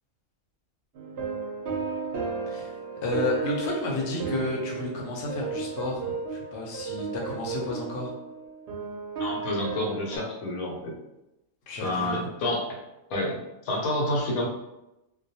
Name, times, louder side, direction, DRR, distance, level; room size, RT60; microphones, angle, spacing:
sound 1, 1.0-10.2, right 4 dB, 60° right, 0.7 m, -34 dB
voice 1, 3.0-8.1 11.7-12.2, left 2 dB, 65° left, -1 dB, 0.8 m, -32 dB
voice 2, 9.2-11.0 11.8-12.8 13.1-14.5, left 1 dB, 85° left, -2 dB, 1.1 m, -29 dB
2.2 x 2.2 x 2.7 m, 0.92 s
omnidirectional pair, 1.5 m